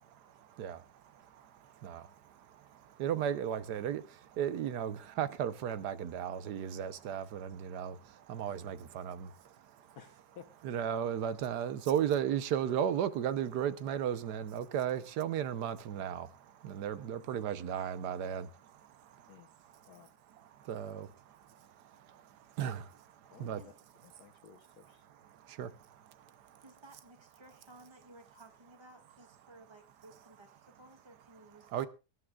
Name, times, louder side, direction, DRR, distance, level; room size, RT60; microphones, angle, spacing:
voice 1, 3.0-4.0 4.4-8.0 8.3-9.3 10.6-16.3 16.6-18.5 20.7-21.1 22.6-22.9 23.4-23.6 25.6-25.7 31.7-31.9, right 9 dB, 90° right, 1.4 m, -34 dB
voice 2, 9.9-10.5 16.9-17.3 19.3-19.5 19.9-20.1 23.3-23.6 24.0-25.0, left 8 dB, 70° left, 1.5 m, -56 dB
voice 3, 26.6-31.9, right 2 dB, 15° right, 1.9 m, -57 dB
24.5 x 11.5 x 2.4 m
omnidirectional pair, 1.7 m